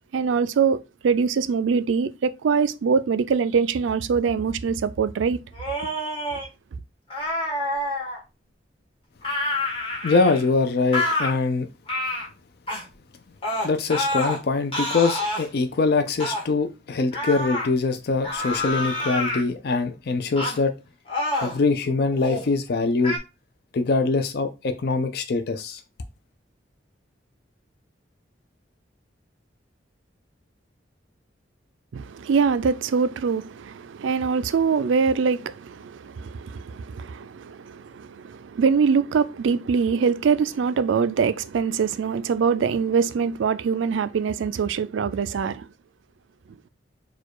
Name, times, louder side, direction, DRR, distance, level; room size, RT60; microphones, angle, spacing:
voice 1, 0.1-5.4 31.9-45.7, right 6 dB, 80° right, 0.4 m, -23 dB
sound 1, 5.5-6.5 7.1-8.2 9.2-10.5 10.9-11.3 11.9-12.3 12.7-12.8 13.4-14.4 14.7-15.5 16.2-16.5 17.1-17.7 18.2-19.4 20.4-20.6 21.1-21.6 22.1-22.5 23.0-23.2, left 1 dB, 30° left, 1.4 m, -27 dB
voice 2, 10.0-11.7 13.6-20.7 21.4-23.2 23.7-25.8, left 3 dB, 55° left, 0.4 m, -23 dB
4.5 x 2.3 x 4.5 m
head